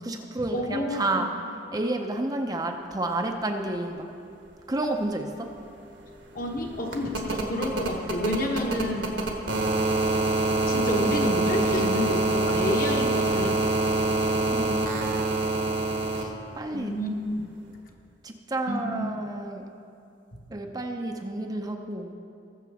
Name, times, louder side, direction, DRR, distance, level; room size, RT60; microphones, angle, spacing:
voice 1, 0.0-1.5 1.7-4.1 4.7-5.5 9.0-9.1 14.5-15.1 16.1-17.0 18.2-19.7 20.5-22.1, right 2 dB, 20° right, 4 dB, 0.6 m, -31 dB
voice 2, 0.5-1.2 6.3-9.1 10.7-13.7 16.7-17.1 18.7-19.0, left 1 dB, 50° left, 1 dB, 1.3 m, -29 dB
sound 1, 5.0-5.1 5.3-16.2 17.7-17.8, right 2 dB, 70° right, 1.4 m, -26 dB
20.0 x 7.0 x 3.5 m, 2.6 s
head